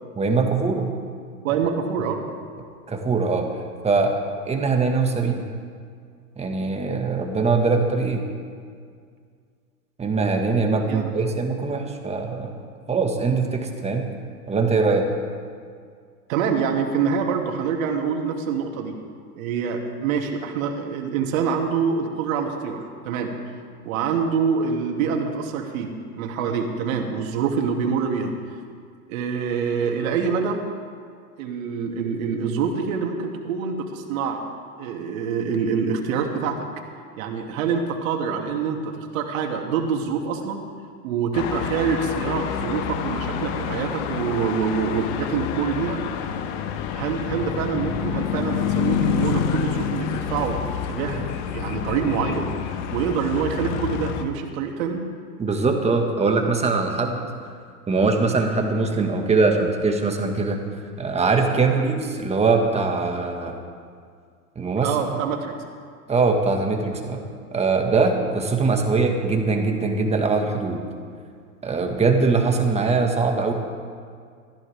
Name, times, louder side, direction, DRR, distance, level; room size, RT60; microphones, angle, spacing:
voice 1, 0.2-0.9 1.5-1.6 2.9-3.5 3.8-5.4 6.4-8.3 10.0-12.5 12.9-14.1 14.5-15.1 55.4-57.2 57.9-60.6 61.0-63.6 64.6-64.9 66.1-67.2 67.5-70.8 71.6-73.5, right 4 dB, 15° right, 3 dB, 1.8 m, -22 dB
voice 2, 1.4-2.2 10.9-11.3 16.3-18.9 19.4-23.3 23.8-25.9 26.2-28.3 29.1-30.6 31.4-34.4 34.8-36.6 37.2-40.6 41.0-46.0 46.9-51.2 51.5-52.5 52.9-55.0 64.8-65.5, right 6 dB, 60° right, 2 dB, 2.7 m, -25 dB
sound 1, 41.3-54.3, left 8 dB, 45° left, 1.4 m, -28 dB
24.0 x 15.0 x 3.6 m, 2.1 s
hypercardioid pair, 115°, 47 cm